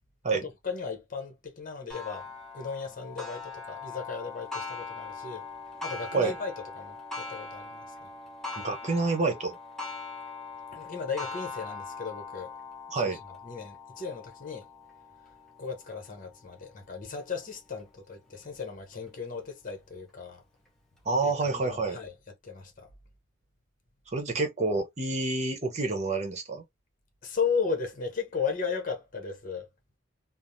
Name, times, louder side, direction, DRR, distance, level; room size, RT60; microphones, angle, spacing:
voice 1, 0.3-2.3 2.5-5.4 5.8-8.1 10.7-12.5 12.9-13.2 13.4-14.7 15.6-20.4 21.2-22.1 22.4-22.9 27.2-29.7, left 5 dB, 40° left, 0.9 m, -35 dB
Clock, 1.9-17.2 17.8-17.9 18.4-18.5 19.5-19.6, left 4 dB, ahead, 0.9 m, -41 dB
voice 2, 8.6-9.6 12.9-13.2 21.0-22.0 24.1-26.6, right 3 dB, 35° right, 1.0 m, -28 dB
3.3 x 2.0 x 2.6 m
head